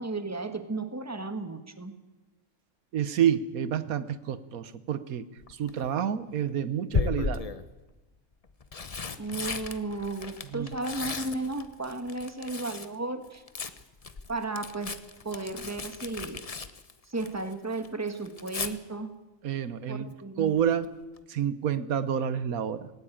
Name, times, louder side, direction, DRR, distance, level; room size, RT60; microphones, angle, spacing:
voice 1, 0.0-1.9 9.2-13.4 14.3-14.9 15.2-16.5 17.1-19.1 19.9-20.6, right 3 dB, 10° right, 9 dB, 1.5 m, -34 dB
voice 2, 2.9-5.2 5.6-7.4 10.5-10.7 19.4-21.0 21.3-22.9, right 9 dB, 90° right, 14 dB, 1.4 m, -29 dB
Tearing, 5.4-5.9 6.9-7.7 8.4-12.9 13.2-17.5 17.8-18.7 20.6-20.9 21.2-21.3, left 4 dB, 30° left, 0.8 m, -35 dB
18.5 x 18.0 x 8.9 m, 1.1 s
omnidirectional pair, 1.5 m